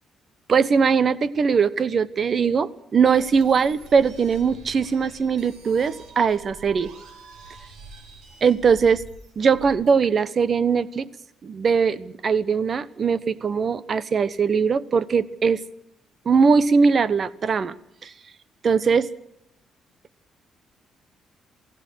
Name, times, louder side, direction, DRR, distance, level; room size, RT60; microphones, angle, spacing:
voice 1, 0.5-6.9 7.5-7.6 8.4-9.0 9.4-11.1 11.4-15.6 16.2-17.7 18.0-18.1 18.6-19.1, right 5 dB, 45° right, 17 dB, 1.2 m, -20 dB
sound 1, 3.1-9.9, right 3 dB, 80° right, 6.6 m, -46 dB
28.0 x 16.5 x 6.5 m, 0.83 s
cardioid pair, 90°, 0 cm